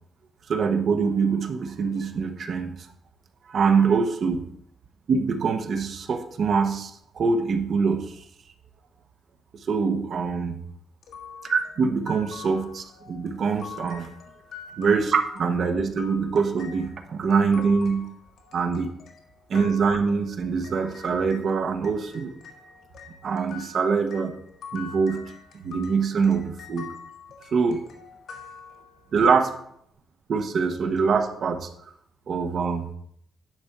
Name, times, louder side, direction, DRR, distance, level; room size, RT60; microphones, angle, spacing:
voice 1, 0.5-2.9 3.5-4.4 5.1-8.2 9.5-10.6 11.4-14.1 14.8-18.1 18.5-18.9 19.5-22.3 23.2-24.3 24.7-25.2 25.5-26.9 27.5-27.8 29.1-29.5 30.3-31.7 32.3-32.9, right 5 dB, 45° right, 7 dB, 1.0 m, -24 dB
sound 1, 11.0-21.5 21.8-29.2, left 6 dB, 65° left, 1.6 m, -45 dB
11.0 x 4.5 x 6.7 m, 0.70 s
cardioid pair, 165°, 0 cm